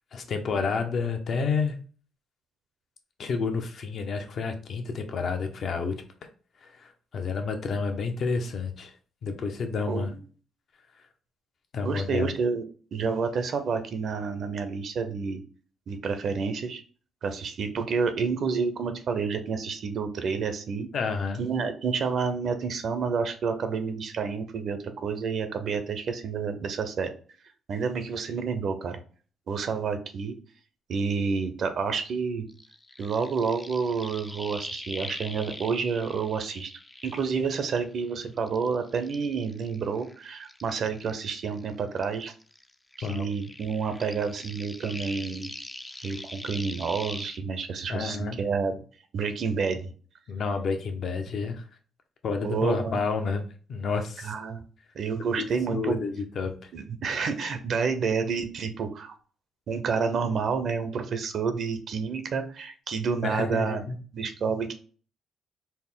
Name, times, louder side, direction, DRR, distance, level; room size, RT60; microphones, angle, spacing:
voice 1, 0.1-1.8 3.2-6.0 6.6-8.9 9.2-10.1 11.7-12.3 20.9-21.4 43.0-43.3 47.9-48.4 50.3-51.6 52.2-54.3 55.2-55.5 55.7-56.7 63.2-64.0, left 4 dB, 60° left, 5 dB, 0.7 m, -30 dB
voice 2, 9.9-10.2 11.8-12.6 12.9-15.4 15.9-16.8 17.2-20.9 21.4-27.1 27.7-29.0 29.5-30.4 30.9-32.5 33.0-36.7 37.0-42.3 43.0-45.5 46.0-48.8 49.1-49.9 52.4-53.0 54.2-54.6 54.9-56.0 56.7-59.1 59.7-63.8 64.1-64.7, right 5 dB, 60° right, 9 dB, 0.6 m, -29 dB
sound 1, 32.5-38.0 38.4-41.7 42.0-47.4, left 1 dB, 15° left, 0.4 m, -42 dB
4.2 x 2.1 x 3.6 m, 0.41 s
cardioid pair, 90°, 0 cm